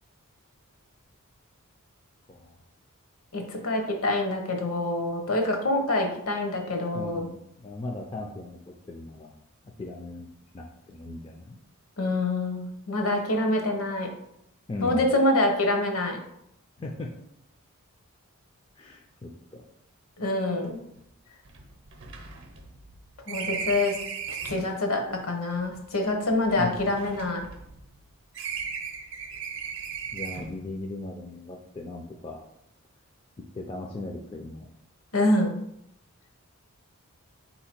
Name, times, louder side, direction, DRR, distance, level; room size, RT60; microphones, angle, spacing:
voice 1, 3.3-7.3 12.0-14.1 14.8-16.2 20.2-20.8 23.3-24.0 24.3-27.4 35.1-35.5, left 2 dB, 70° left, 4 dB, 0.9 m, -26 dB
voice 2, 6.9-9.3 9.6-10.3 10.5-11.6 14.7-15.1 16.8-17.1 18.8-19.6 26.5-26.9 30.1-32.4 33.5-34.7, left 2 dB, 25° left, 0 dB, 0.3 m, -38 dB
sound 1, 20.6-20.7 21.0-21.1 21.4-24.7 25.6-28.0 28.3-30.7, right 6 dB, 55° right, 0.6 m, -37 dB
4.0 x 2.8 x 4.3 m, 0.76 s
head